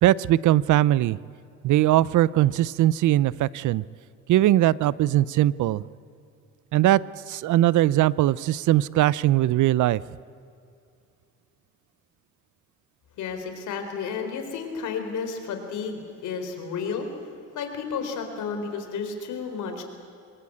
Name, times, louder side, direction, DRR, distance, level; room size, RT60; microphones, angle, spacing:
voice 1, 0.0-1.2 1.6-3.8 4.3-5.8 6.7-7.0 7.3-10.0, right 14 dB, 75° right, 21 dB, 0.6 m, -20 dB
voice 2, 13.2-17.1 17.5-19.8, left 5 dB, 80° left, 6 dB, 4.0 m, -32 dB
24.5 x 21.5 x 8.7 m, 2.5 s
cardioid pair, 90°, 30 cm